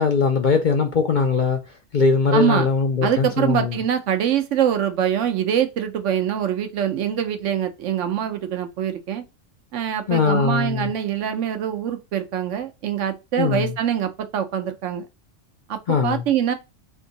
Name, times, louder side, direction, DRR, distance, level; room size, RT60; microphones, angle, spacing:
voice 1, 0.0-1.6 1.9-3.8 10.1-10.9 13.4-13.7 15.9-16.2, left 5 dB, 55° left, 0.6 m, -20 dB
voice 2, 2.3-2.7 3.0-9.2 9.7-15.1 15.7-16.5, right 9 dB, 75° right, 1.0 m, -24 dB
3.6 x 2.6 x 3.9 m
omnidirectional pair, 1.3 m